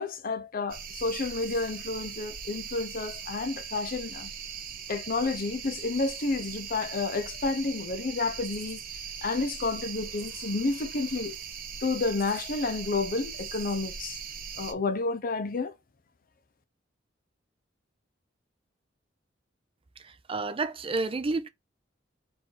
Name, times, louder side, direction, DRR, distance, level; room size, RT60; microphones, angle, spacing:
voice 1, 0.0-4.3 4.9-8.8 9.2-11.4 11.8-14.2 14.6-15.7, left 3 dB, 50° left, 0.6 m, -30 dB
sound 1, 0.7-14.7, right 7 dB, 50° right, 0.9 m, -40 dB
voice 2, 20.0-21.5, right 3 dB, 30° right, 0.5 m, -30 dB
4.6 x 2.6 x 4.1 m
head